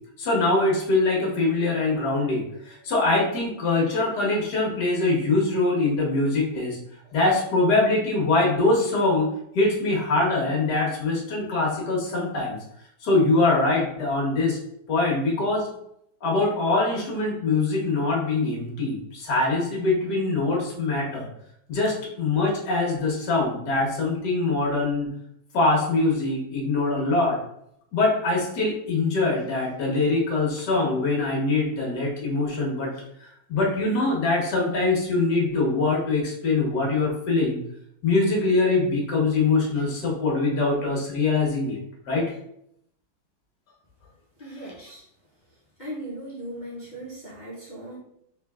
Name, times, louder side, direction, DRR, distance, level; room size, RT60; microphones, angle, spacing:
voice 1, 0.2-6.8 7.1-9.3 9.5-12.6 13.0-14.6 14.9-15.7 16.2-21.3 21.7-25.1 25.5-27.4 27.9-32.9 33.2-37.6 38.0-41.8 42.1-42.2, left 3 dB, 60° left, -3 dB, 1.5 m, -23 dB
voice 2, 44.4-45.0 45.8-48.0, right 1 dB, 80° left, -9 dB, 0.4 m, -38 dB
3.8 x 3.8 x 2.3 m, 0.75 s
omnidirectional pair, 2.2 m